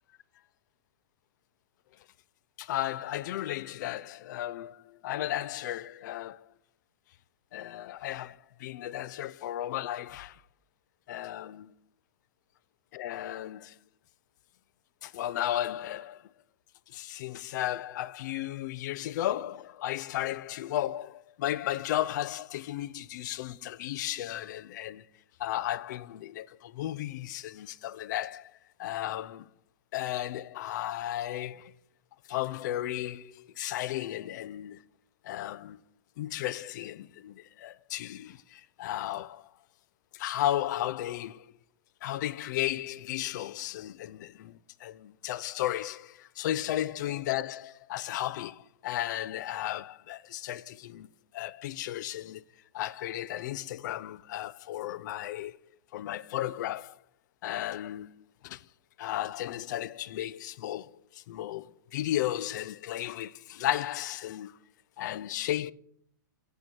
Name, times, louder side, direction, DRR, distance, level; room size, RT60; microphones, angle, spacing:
voice 1, 2.6-6.4 7.5-10.4 11.1-11.7 12.9-13.7 15.0-16.3 16.9-25.1 25.4-29.5 29.9-31.7 32.3-34.8 35.2-35.8 36.2-39.5 40.1-41.4 42.0-51.1 51.3-52.4 52.7-55.6 55.9-57.0 57.4-58.1 58.4-58.7 59.0-64.6 65.0-65.7, left 13 dB, 60° left, 0.5 m, -34 dB
10.0 x 7.2 x 4.4 m
hypercardioid pair, 125°, 11 cm